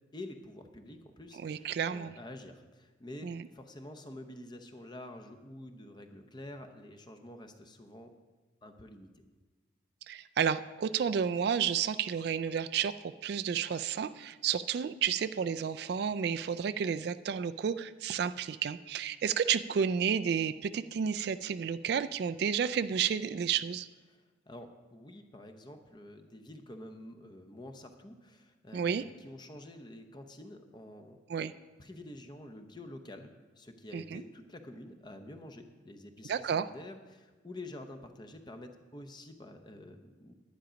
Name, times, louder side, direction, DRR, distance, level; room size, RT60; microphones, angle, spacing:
voice 1, 0.1-8.1 8.6-9.2 24.1-31.2 31.8-40.3, left 1 dB, 25° left, 7 dB, 0.7 m, -48 dB
voice 2, 1.4-2.1 3.2-3.4 10.1-23.9 28.7-29.0 31.3-31.5 33.9-34.2 36.3-36.7, right 7 dB, 55° right, 12 dB, 0.3 m, -31 dB
10.5 x 10.0 x 5.1 m, 1.3 s
head